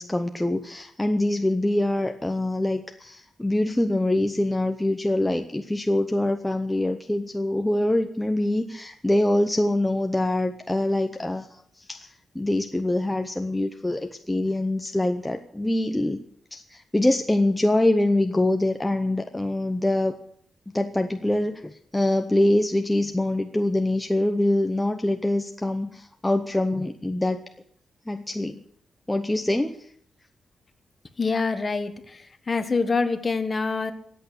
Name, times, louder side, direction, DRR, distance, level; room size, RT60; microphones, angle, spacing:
voice 1, 0.0-12.1 12.3-16.2 16.5-20.1 20.7-27.4 28.1-28.6 29.1-29.8, left 1 dB, 10° left, 5 dB, 0.8 m, -24 dB
voice 2, 31.2-33.9, left 4 dB, 30° left, 8 dB, 1.4 m, -26 dB
22.5 x 8.4 x 6.8 m, 0.65 s
wide cardioid pair, 150°, 0 cm